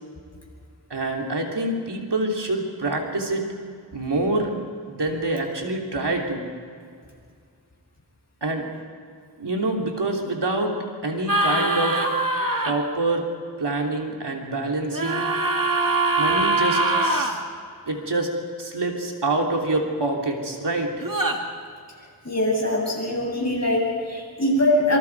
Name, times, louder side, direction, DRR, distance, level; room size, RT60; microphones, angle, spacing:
voice 1, 0.9-3.4 3.9-4.6 4.9-6.5 8.4-8.6 9.4-10.7 11.0-12.0 12.6-13.3 13.6-15.3 16.2-17.4 17.9-18.3 18.6-20.9, right 2 dB, 80° right, 0 dB, 3.2 m, -26 dB
sound 1, 11.3-12.7 14.9-17.3 21.0-21.4, right 2 dB, 55° right, 2.3 m, -22 dB
voice 2, 22.2-25.0, left 1 dB, 40° left, -2 dB, 7.8 m, -22 dB
26.0 x 25.5 x 4.8 m, 2.2 s
wide cardioid pair, 60°, 40 cm